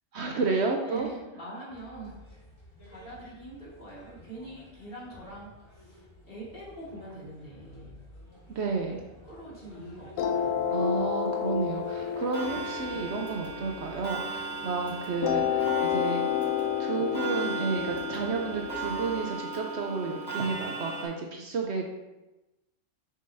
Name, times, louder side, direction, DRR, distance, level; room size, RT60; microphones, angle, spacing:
voice 1, 0.1-1.1 8.5-9.0 10.7-16.3 16.8-21.9, right 4 dB, 65° right, 2 dB, 0.8 m, -31 dB
voice 2, 0.9-2.2 2.8-8.0 9.3-10.9, right 2 dB, 45° left, -7 dB, 2.1 m, -44 dB
sound 1, 1.7-19.2, left 1 dB, 20° left, 1.3 m, -51 dB
sound 2, 10.2-14.6 15.2-20.2, left 9 dB, 75° left, 1.0 m, -31 dB
Clock, 12.3-21.1, right 4 dB, 20° right, 1.3 m, -37 dB
6.5 x 5.5 x 2.6 m, 1.0 s
omnidirectional pair, 1.4 m